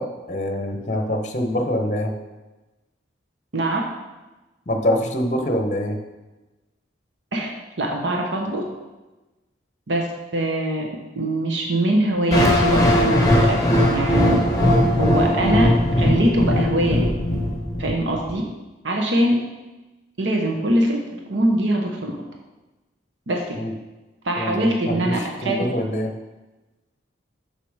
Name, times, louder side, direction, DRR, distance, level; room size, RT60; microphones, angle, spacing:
voice 1, 0.0-2.2 4.7-6.0 23.5-23.7 24.4-26.1, equal, 40° left, 4 dB, 0.8 m, -25 dB
voice 2, 7.8-8.6 9.9-10.9 11.1-13.6 13.9-14.4 15.0-15.7 16.0-17.1 17.8-18.4 18.8-19.4 20.2-21.0 21.3-22.1 23.3-23.6 24.2-25.2 25.4-25.7, right 1 dB, 85° right, 1 dB, 1.0 m, -22 dB
sound 1, 12.3-18.3, left 1 dB, 20° left, 1.1 m, -19 dB
7.0 x 5.9 x 4.8 m, 1.1 s
head